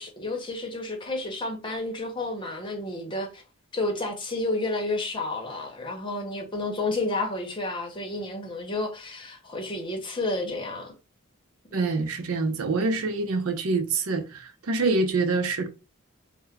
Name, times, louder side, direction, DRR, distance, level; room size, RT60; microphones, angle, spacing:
voice 1, 0.0-3.4 3.7-10.9, left 2 dB, 25° left, 0.8 m, -31 dB
voice 2, 11.7-15.7, right 3 dB, 75° right, 0.5 m, -26 dB
2.9 x 2.1 x 3.5 m
head